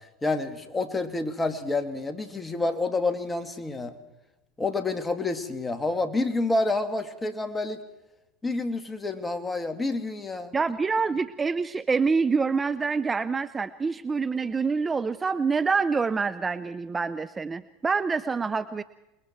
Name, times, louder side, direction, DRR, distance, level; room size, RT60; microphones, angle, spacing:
voice 1, 0.2-3.9 4.6-7.8 8.4-10.5, left 2 dB, 15° left, 8 dB, 2.2 m, -28 dB
voice 2, 10.5-18.8, right 4 dB, 20° right, 14 dB, 0.6 m, -26 dB
28.0 x 21.0 x 4.5 m, 0.97 s
hypercardioid pair, 85°, 0 cm